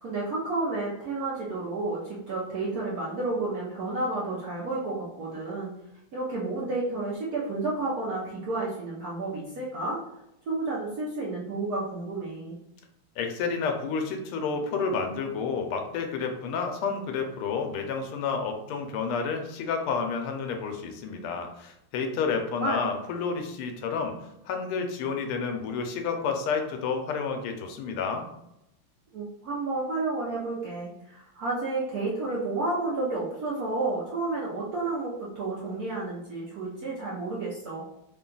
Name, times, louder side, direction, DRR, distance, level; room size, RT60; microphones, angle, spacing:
voice 1, 0.0-5.7 6.1-10.0 10.5-12.5 22.6-22.8 29.1-37.8, right 2 dB, 65° right, -6 dB, 0.9 m, -31 dB
voice 2, 13.2-24.1 24.5-28.3, left 5 dB, 85° left, 4 dB, 1.5 m, -30 dB
3.7 x 2.3 x 3.8 m, 0.84 s
omnidirectional pair, 2.4 m